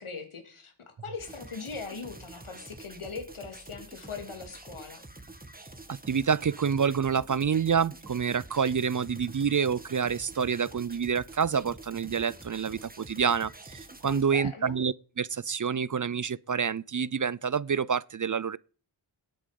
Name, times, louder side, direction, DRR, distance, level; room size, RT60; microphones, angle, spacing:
voice 1, 0.0-5.0 14.1-14.8, left 4 dB, 85° left, 3.1 m, -40 dB
sound 1, 1.2-14.2, right 2 dB, 20° right, 2.0 m, -47 dB
voice 2, 6.1-18.6, right 6 dB, 40° right, 0.5 m, -28 dB
19.0 x 8.7 x 5.3 m
cardioid pair, 55°, 48 cm